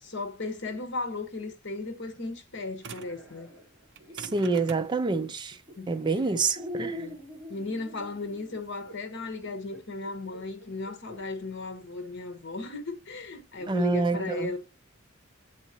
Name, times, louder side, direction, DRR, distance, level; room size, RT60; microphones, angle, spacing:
voice 1, 0.0-3.5 5.8-5.9 6.9-7.2 7.5-14.6, left 2 dB, 60° left, 1.2 m, -36 dB
sound 1, 2.8-3.2 3.9-8.9, right 6 dB, 60° right, 0.7 m, -46 dB
sound 2, 2.9-4.9 5.7-6.0 6.5-11.2 11.9-12.0 13.6-13.8, equal, 5° right, 3.7 m, -43 dB
voice 2, 4.2-5.6 5.9-7.1 13.7-14.5, right 3 dB, 20° right, 0.4 m, -27 dB
8.1 x 4.2 x 2.9 m
head